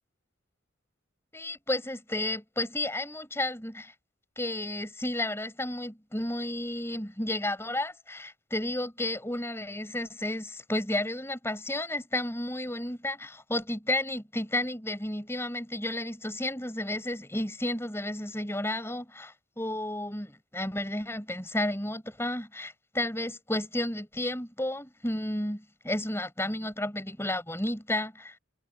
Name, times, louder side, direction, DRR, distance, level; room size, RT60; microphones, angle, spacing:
voice 1, 1.3-3.9 4.4-28.4, left 1 dB, 15° left, 6.2 m, -32 dB
head